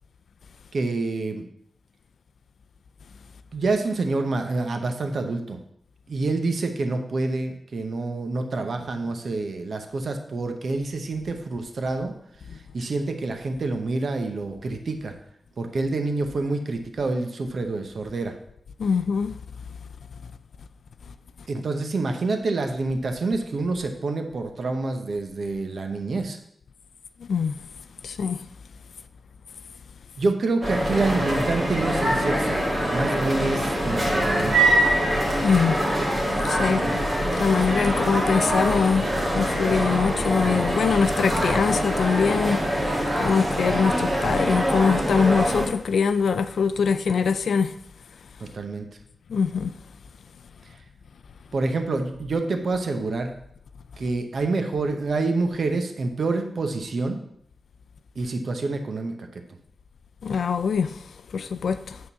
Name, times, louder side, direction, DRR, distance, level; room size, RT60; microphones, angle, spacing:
voice 1, 0.7-1.5 3.5-5.6 6.1-12.1 12.7-15.1 15.6-18.3 21.5-26.4 30.2-32.6 32.9-34.6 36.7-36.9 48.4-48.9 51.5-53.3 54.0-57.2 58.2-59.1, right 3 dB, 60° right, 0.9 m, -27 dB
voice 2, 18.8-19.4 27.2-27.6 28.0-28.4 35.4-35.8 36.4-36.8 37.4-39.1 39.3-47.7 49.3-49.7 60.2-60.9 61.3-62.0, left 6 dB, 80° left, 0.4 m, -23 dB
sound 1, 30.6-45.7, equal, 25° right, 1.9 m, -24 dB
8.5 x 3.8 x 6.8 m
wide cardioid pair, 125°, 0 cm